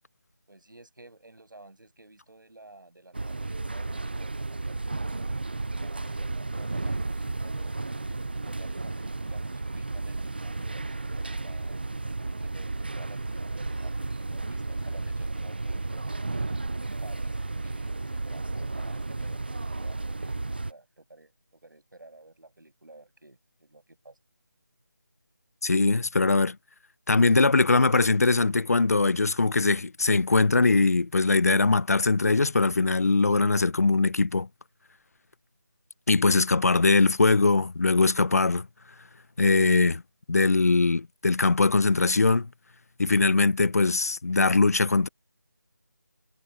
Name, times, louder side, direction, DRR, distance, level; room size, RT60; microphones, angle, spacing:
voice 1, 0.5-5.1 5.8-7.8 8.3-11.9 12.3-16.1 16.8-20.4 20.7-24.2, right 2 dB, 90° right, 7.5 m, -52 dB
sound 1, 3.1-20.7, right 2 dB, 30° right, 0.3 m, -33 dB
voice 2, 25.6-26.6 27.1-34.5 36.1-38.7 39.4-40.0 40.3-42.5 43.0-45.1, left 3 dB, 50° left, 0.9 m, -21 dB
figure-of-eight pair, 175°, 10 cm